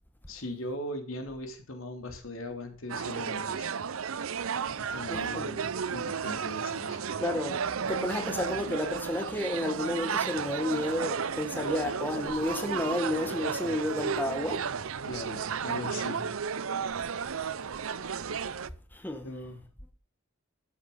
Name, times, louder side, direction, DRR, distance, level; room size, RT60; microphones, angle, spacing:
voice 1, 0.3-3.7 4.8-7.0 15.0-16.3 19.2-19.6, left 1 dB, 75° left, 3.2 m, -39 dB
sound 1, 2.9-18.7, right 6 dB, 80° right, 0.6 m, -33 dB
voice 2, 5.1-5.5 7.2-7.6 7.9-14.6 18.9-19.3, left 1 dB, 10° left, 1.3 m, -31 dB
sound 2, 6.6-16.8 17.4-17.7, right 1 dB, 60° right, 1.7 m, -50 dB
13.0 x 8.3 x 5.5 m
head